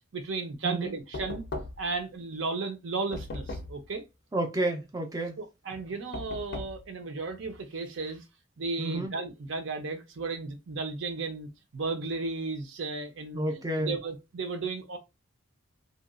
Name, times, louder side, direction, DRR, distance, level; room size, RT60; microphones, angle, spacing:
voice 1, 0.1-1.4 1.8-4.0 5.4-8.2 8.6-15.0, right 3 dB, 65° right, 0.6 m, -34 dB
voice 2, 0.6-0.9 4.3-5.4 8.8-9.2 13.3-14.0, right 1 dB, 20° right, 0.4 m, -30 dB
Knock, 1.1-2.0 3.1-3.9 6.1-6.9, left 2 dB, 55° left, 0.4 m, -38 dB
2.8 x 2.3 x 2.4 m
head